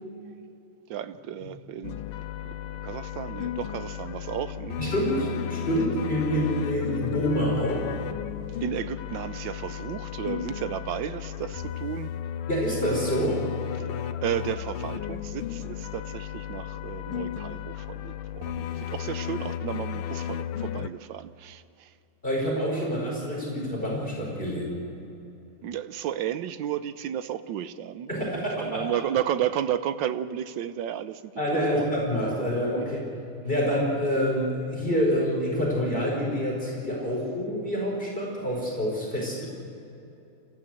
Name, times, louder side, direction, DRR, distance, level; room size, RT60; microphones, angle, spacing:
voice 1, 0.9-2.0 2.4-2.5 2.8-4.8 5.1-5.3 8.6-12.2 13.7-21.9 25.6-31.9 32.7-32.9, right 10 dB, 65° right, 12 dB, 1.4 m, -33 dB
sound 1, 1.8-20.9, left 10 dB, 80° left, 1.7 m, -34 dB
voice 2, 4.8-7.9 12.5-13.5 22.2-24.9 28.1-29.0 31.4-33.0 33.4-39.5, equal, 25° left, -3 dB, 5.2 m, -27 dB
28.5 x 15.0 x 7.8 m, 2.8 s
omnidirectional pair, 2.4 m